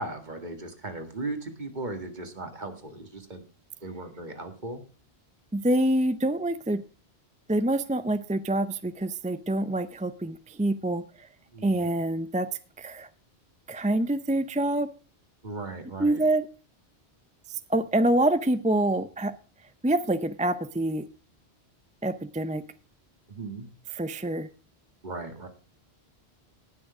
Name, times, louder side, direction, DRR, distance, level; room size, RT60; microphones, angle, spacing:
voice 1, 0.0-3.5 3.8-4.8 11.5-11.9 15.4-16.2 23.3-23.7 25.0-25.5, right 2 dB, 45° right, 6 dB, 1.9 m, -37 dB
voice 2, 5.5-6.8 7.5-11.3 11.6-12.5 12.8-13.1 13.7-14.9 16.0-16.5 17.5-19.3 19.8-21.1 22.0-22.6 23.9-24.5, right 1 dB, 10° right, 12 dB, 0.4 m, -26 dB
19.0 x 6.4 x 4.8 m, 0.36 s
omnidirectional pair, 1.1 m